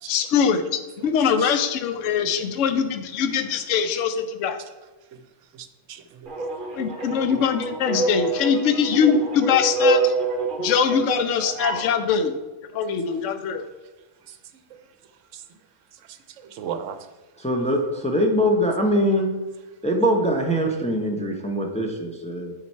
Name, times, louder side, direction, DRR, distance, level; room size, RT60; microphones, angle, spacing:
voice 1, 0.1-4.6 6.8-10.1 10.6-12.4 12.7-13.6, left 7 dB, 75° left, 8 dB, 0.9 m, -22 dB
voice 2, 5.5-6.4 14.3-14.4 14.7-14.8 15.3-15.4 16.4-17.0, right 8 dB, 75° right, 10 dB, 0.9 m, -36 dB
sound 1, 6.3-11.9, right 3 dB, 45° right, 1.0 m, -26 dB
voice 3, 17.4-19.3 19.8-22.5, equal, 10° left, 1 dB, 0.4 m, -22 dB
7.4 x 4.0 x 4.4 m, 1.2 s
omnidirectional pair, 1.3 m